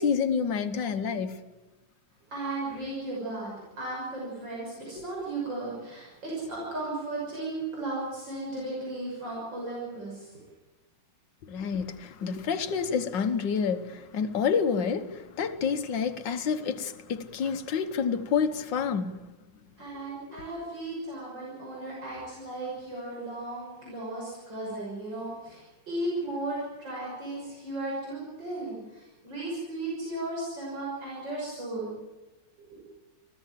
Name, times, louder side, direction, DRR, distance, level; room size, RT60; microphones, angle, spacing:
voice 1, 0.0-1.4 4.9-5.1 11.4-19.2 20.3-20.4, left 6 dB, 80° left, 1.9 m, -28 dB
voice 2, 2.3-10.3 19.8-32.0 32.6-32.8, right 2 dB, 90° right, 6.9 m, -35 dB
25.0 x 16.0 x 7.5 m
omnidirectional pair, 2.0 m